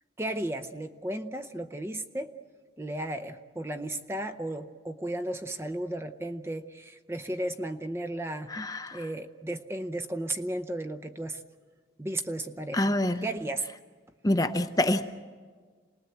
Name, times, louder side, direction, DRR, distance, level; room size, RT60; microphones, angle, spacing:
voice 1, 0.2-2.3 2.8-8.6 8.9-11.4 12.0-12.9 13.2-13.7, right 1 dB, 15° right, 8 dB, 0.7 m, -34 dB
voice 2, 8.5-9.0 12.7-13.2 14.2-15.1, left 1 dB, 20° left, 8 dB, 0.7 m, -26 dB
28.0 x 19.5 x 8.0 m, 1.6 s
head